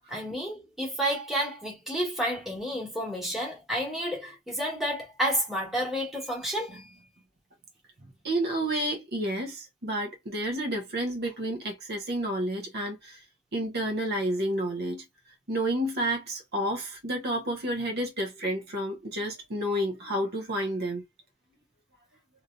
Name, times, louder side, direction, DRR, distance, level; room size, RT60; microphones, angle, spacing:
voice 1, 0.1-6.9, equal, ahead, 1.4 m, -30 dB
voice 2, 8.2-13.2 13.5-15.0 15.5-21.0, right 1 dB, 50° right, 1.0 m, -30 dB
3.2 x 2.8 x 2.5 m
head